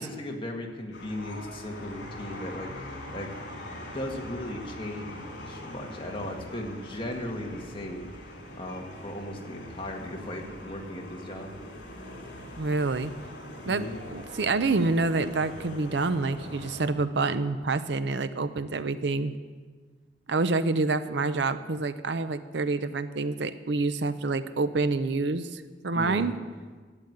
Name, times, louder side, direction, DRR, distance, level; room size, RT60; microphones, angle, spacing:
voice 1, 0.0-2.7 3.1-3.3 3.6-3.7 3.9-8.1 8.5-11.5 13.6-14.0 25.9-26.3, left 1 dB, 30° left, 1 dB, 1.8 m, -37 dB
sound 1, 0.9-16.9, left 1 dB, 70° left, 3.1 m, -42 dB
voice 2, 12.6-13.1 13.7-19.3 20.3-26.4, right 3 dB, 70° right, 12 dB, 0.6 m, -27 dB
12.0 x 8.2 x 9.5 m, 1.5 s
head